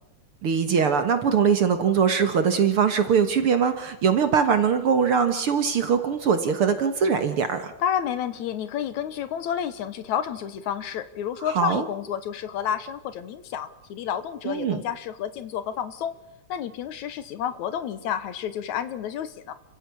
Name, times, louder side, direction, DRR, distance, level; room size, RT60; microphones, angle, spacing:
voice 1, 0.4-7.7 11.4-11.8 14.5-14.8, right 6 dB, 50° right, 9 dB, 2.0 m, -22 dB
voice 2, 7.8-16.1 16.5-19.5, left 9 dB, 70° left, 13 dB, 2.4 m, -30 dB
29.5 x 15.5 x 7.1 m, 0.84 s
omnidirectional pair, 3.5 m